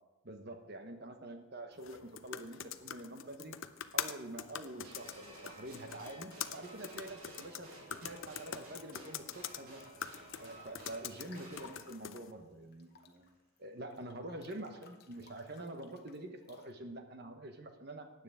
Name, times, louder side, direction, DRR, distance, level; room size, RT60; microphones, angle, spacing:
voice 1, 0.2-3.6 3.9-9.8 10.4-13.3 13.6-18.1, right 1 dB, 50° right, 5 dB, 1.2 m, -46 dB
sound 1, 1.8-12.3, left 9 dB, 70° left, 0.6 m, -44 dB
sound 2, 4.8-12.3 13.2-13.3, right 2 dB, 85° right, 3.0 m, -54 dB
Breathing / Bathtub (filling or washing) / Splash splatter, 10.3-12.2 12.7-16.7, left 5 dB, 50° left, 0.9 m, -59 dB
16.0 x 9.7 x 3.6 m, 1.1 s
head